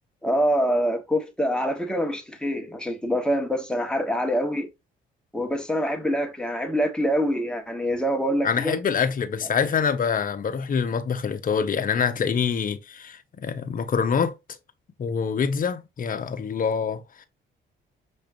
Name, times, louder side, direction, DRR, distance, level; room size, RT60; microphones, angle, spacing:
voice 1, 0.2-4.7 5.3-8.8, equal, 5° left, 1.3 m, -25 dB
voice 2, 8.4-14.3 15.0-17.3, left 6 dB, 45° left, 0.9 m, -25 dB
6.1 x 3.3 x 2.6 m
cardioid pair, 90°, 20 cm